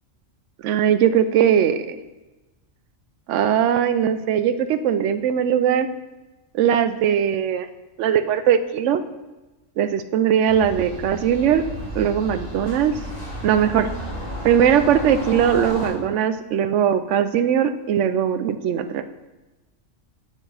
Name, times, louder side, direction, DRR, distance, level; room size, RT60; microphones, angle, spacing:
voice 1, 0.6-2.0 3.3-5.9 6.5-7.7 8.0-9.0 9.8-11.6 11.9-12.9 13.4-13.9 14.4-19.0, right 9 dB, 75° right, 11 dB, 0.9 m, -20 dB
sound 1, 10.5-15.9, equal, 80° left, 3.2 m, -33 dB
9.6 x 7.3 x 3.4 m, 1.1 s
omnidirectional pair, 1.3 m